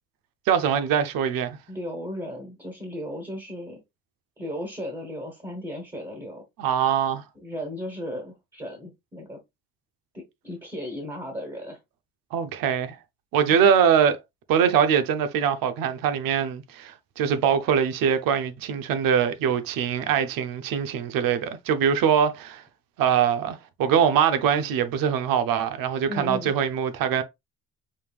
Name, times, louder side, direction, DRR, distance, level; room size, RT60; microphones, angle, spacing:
voice 1, 0.5-1.6 6.6-7.2 12.3-13.0 13.3-14.2 14.5-22.6 23.0-27.2, right 8 dB, 85° right, 0.8 m, -23 dB
voice 2, 1.7-3.8 4.4-6.4 7.4-9.4 10.1-11.8 13.5-13.7 26.1-26.5, equal, 15° right, 1.3 m, -35 dB
5.4 x 3.4 x 2.4 m
cardioid pair, 175°, 33 cm